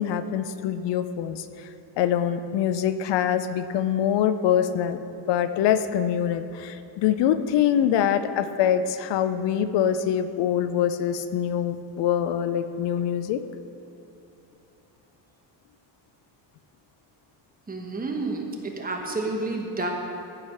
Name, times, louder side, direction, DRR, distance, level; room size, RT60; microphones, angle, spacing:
voice 1, 0.0-1.5 2.0-5.0 5.3-13.4, left 9 dB, 75° left, 11 dB, 0.6 m, -24 dB
voice 2, 17.7-19.9, right 2 dB, 20° right, 1 dB, 1.1 m, -30 dB
14.5 x 4.9 x 5.7 m, 2.9 s
cardioid pair, 165°, 43 cm